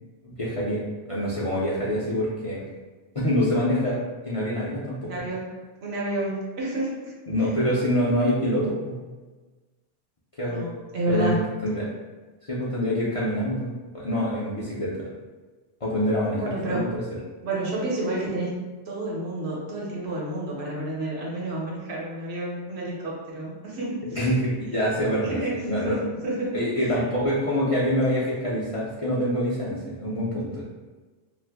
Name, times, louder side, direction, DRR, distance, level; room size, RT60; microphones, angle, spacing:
voice 1, 0.2-2.6 3.1-4.0 4.2-5.2 7.3-9.0 10.4-10.7 11.1-11.3 11.6-11.9 12.4-15.1 15.8-16.4 16.7-17.0 24.1-25.4 25.7-26.0 26.5-30.6, equal, 45° left, -8 dB, 0.4 m, -25 dB
voice 2, 5.0-7.2 10.4-11.4 16.4-16.9 17.4-18.6 18.9-24.2 25.2-25.6 25.8-26.0 26.2-26.5 26.8-26.9, right 1 dB, 70° right, -4 dB, 1.1 m, -30 dB
2.5 x 2.5 x 3.3 m, 1.3 s
omnidirectional pair, 1.2 m